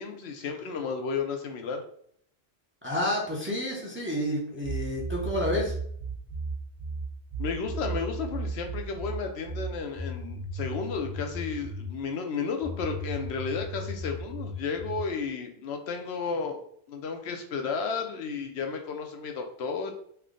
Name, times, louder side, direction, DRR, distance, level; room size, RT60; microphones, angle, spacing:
voice 1, 0.0-1.8 7.4-16.6 16.9-19.9, left 5 dB, 75° left, 4 dB, 0.8 m, -33 dB
voice 2, 2.8-5.7, left 1 dB, 15° right, -3 dB, 0.5 m, -29 dB
sound 1, 4.6-11.9 12.6-15.1, right 2 dB, 40° right, 0.9 m, -35 dB
3.3 x 2.2 x 3.7 m, 0.64 s
omnidirectional pair, 1.1 m